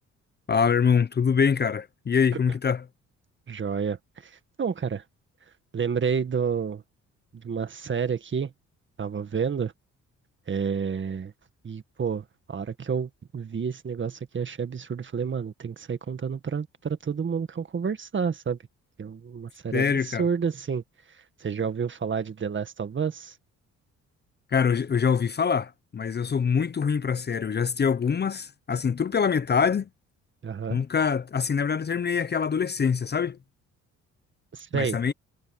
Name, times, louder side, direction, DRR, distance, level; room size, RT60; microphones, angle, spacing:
voice 1, 0.5-2.8 19.7-20.3 24.5-29.9 30.7-33.4 34.7-35.1, left 6 dB, 35° left, 0.8 m, -24 dB
voice 2, 3.5-5.0 5.7-6.8 7.3-8.5 9.0-9.7 10.5-11.3 11.6-18.6 19.0-20.8 21.4-23.3 30.4-30.8 34.5-35.0, right 6 dB, 40° right, 1.9 m, -30 dB
cardioid pair, 90°, 30 cm